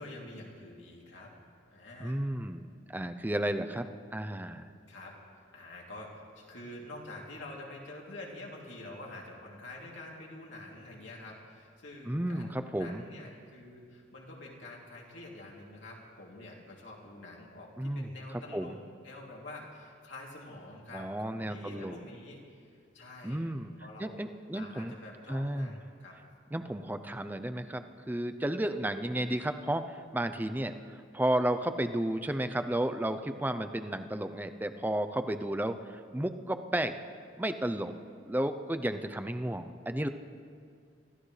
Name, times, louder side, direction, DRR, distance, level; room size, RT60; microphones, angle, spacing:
voice 1, 0.0-1.3 1.7-2.2 4.9-5.2 5.5-18.8 19.0-22.7 22.9-23.5 23.8-24.2 24.5-26.2, left 2 dB, 75° left, -3 dB, 2.9 m, -47 dB
voice 2, 2.0-2.6 2.9-4.7 12.1-13.0 17.8-18.8 20.9-22.0 23.2-23.7 24.0-24.9 25.3-25.7 26.5-37.0 37.4-37.9 38.2-40.1, right 1 dB, 10° right, 8 dB, 0.5 m, -33 dB
25.0 x 15.0 x 3.3 m, 2.2 s
head